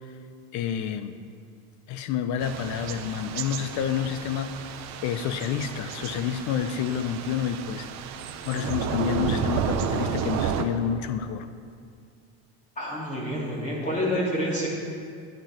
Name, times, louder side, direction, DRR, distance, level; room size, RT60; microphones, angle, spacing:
voice 1, 0.5-1.2 1.9-4.6 5.0-7.9 8.4-11.5, left 8 dB, 60° left, 11 dB, 0.9 m, -29 dB
Thunder / Rain, 2.4-10.6, right 7 dB, 55° right, 1.0 m, -32 dB
voice 2, 12.8-14.7, equal, 20° left, -5 dB, 3.1 m, -28 dB
10.5 x 9.8 x 6.0 m, 2.3 s
supercardioid pair, 120°, 32 cm